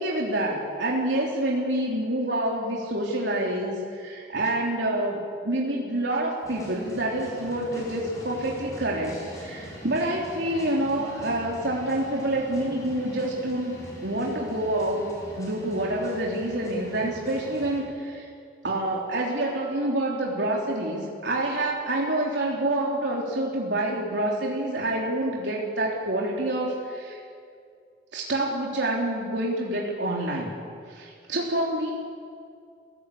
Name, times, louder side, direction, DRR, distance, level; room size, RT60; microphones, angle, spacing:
voice 1, 0.0-13.8 14.0-15.1 15.4-18.3 18.6-27.2 28.1-30.5 30.9-31.9, right 1 dB, 85° right, -3 dB, 3.4 m, -27 dB
sound 1, 6.4-17.8, equal, 20° left, 6.1 m, -42 dB
29.5 x 17.0 x 8.5 m, 2.3 s
head